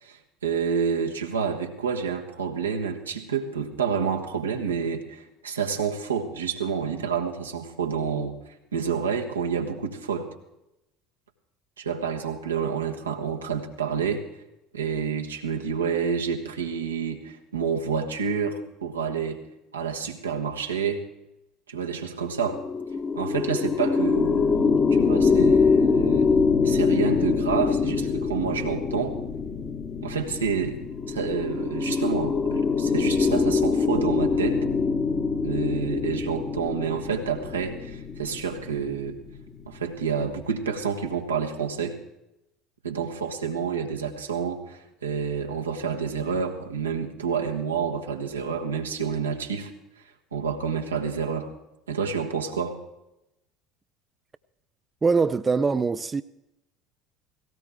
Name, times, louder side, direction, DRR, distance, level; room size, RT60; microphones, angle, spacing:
voice 1, 0.0-10.3 11.8-14.3 14.7-19.4 19.7-21.1 21.7-22.6 23.1-26.3 26.6-29.2 30.0-30.8 31.1-34.6 35.4-39.2 39.6-42.0 42.8-49.7 50.3-51.5 51.9-52.8, right 6 dB, 85° right, 1.3 m, -29 dB
sound 1, 22.3-39.8, left 5 dB, 35° left, 1.3 m, -24 dB
voice 2, 55.0-56.2, right 4 dB, 25° right, 0.5 m, -22 dB
17.5 x 17.0 x 3.6 m
figure-of-eight pair, 65°, 0 cm